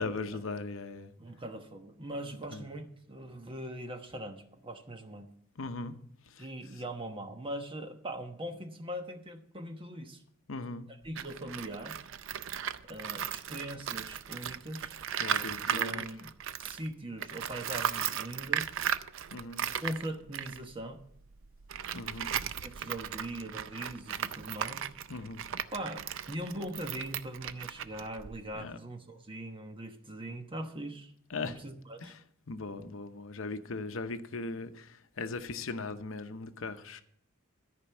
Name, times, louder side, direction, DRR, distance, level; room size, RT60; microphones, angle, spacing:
voice 1, 0.0-1.1 2.5-2.6 5.6-5.9 6.4-6.5 10.5-10.9 15.2-16.1 19.3-19.7 21.9-22.3 25.1-25.4 28.5-28.8 31.3-31.6 32.0-32.1 32.5-37.0, left 3 dB, 65° left, 9 dB, 0.8 m, -38 dB
voice 2, 1.2-5.3 6.4-10.2 10.9-12.1 12.8-14.9 15.6-16.3 16.6-18.7 19.8-21.0 22.6-24.9 25.7-31.1 31.4-32.1, right 1 dB, 25° right, 6 dB, 1.1 m, -41 dB
Tools, 11.1-16.9 17.2-28.6, right 9 dB, 65° right, 0.5 m, -36 dB
13.5 x 5.2 x 7.1 m, 0.66 s
head